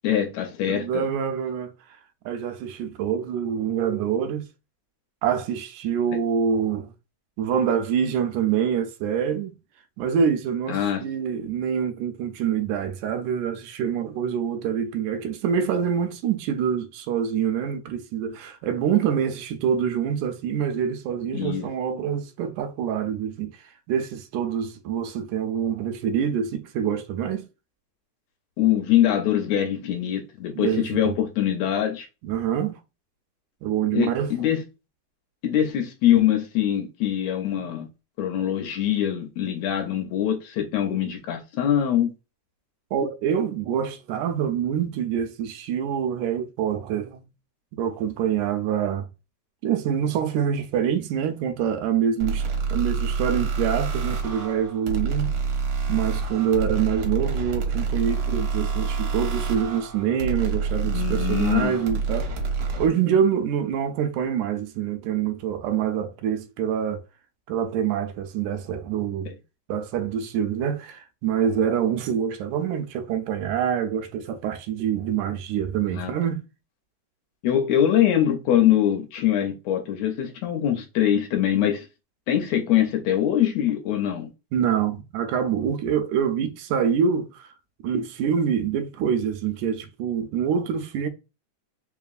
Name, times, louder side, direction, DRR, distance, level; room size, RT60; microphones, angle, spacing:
voice 1, 0.0-1.1 10.7-11.1 21.3-21.7 28.6-32.1 33.9-34.6 35.4-37.9 38.2-42.1 60.8-61.8 69.3-69.4 75.9-76.1 77.4-81.9 82.3-84.3, left 10 dB, 75° left, 1.8 m, -23 dB
voice 2, 0.7-1.7 2.3-4.5 5.2-6.9 7.4-9.6 10.0-23.5 23.9-27.5 30.5-31.2 32.2-32.8 33.6-34.3 37.6-37.7 42.9-47.3 47.7-49.1 49.6-52.5 52.7-55.3 55.9-62.3 62.8-67.0 67.5-69.3 69.7-76.5 84.5-87.5 87.8-91.1, right 8 dB, 85° right, 2.0 m, -25 dB
sound 1, 52.2-62.9, right 4 dB, 70° right, 1.3 m, -27 dB
4.7 x 2.9 x 2.4 m
omnidirectional pair, 3.4 m